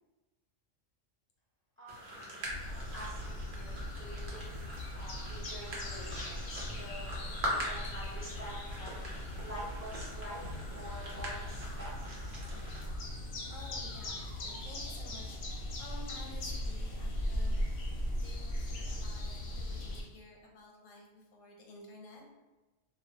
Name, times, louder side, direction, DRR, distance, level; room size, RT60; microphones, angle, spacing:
voice 1, 1.8-2.2 2.6-4.6 4.9-7.1 7.5-8.9 9.4-11.9, equal, 15° right, -8 dB, 0.5 m, -47 dB
sound 1, 1.9-12.8, equal, 60° right, 0.8 m, -43 dB
sound 2, 2.4-20.0, left 1 dB, 60° left, 0.6 m, -39 dB
Musical instrument, 10.4-16.0, equal, 30° right, 1.0 m, -60 dB
voice 2, 13.5-17.8 18.2-22.4, left 2 dB, 85° left, 0 dB, 1.0 m, -53 dB
2.4 x 2.0 x 2.7 m, 1.1 s
omnidirectional pair, 1.3 m